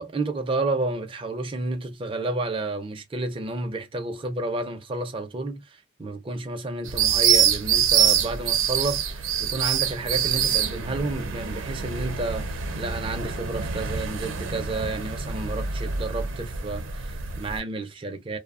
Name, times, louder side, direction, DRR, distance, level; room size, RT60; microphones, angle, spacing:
voice 1, 0.0-18.4, right 2 dB, 25° right, 0.4 m, -31 dB
sound 1, 6.9-17.6, right 8 dB, 90° right, 0.6 m, -25 dB
2.8 x 2.1 x 2.3 m
head